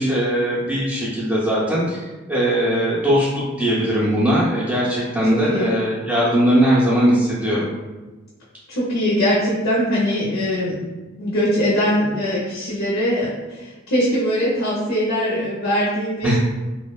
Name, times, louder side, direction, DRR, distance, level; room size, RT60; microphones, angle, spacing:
voice 1, 0.0-7.7 16.2-16.4, equal, 10° right, -9 dB, 0.4 m, -20 dB
voice 2, 8.7-10.8 11.2-16.4, equal, 70° left, -7 dB, 0.6 m, -21 dB
2.8 x 2.0 x 2.3 m, 1.2 s
head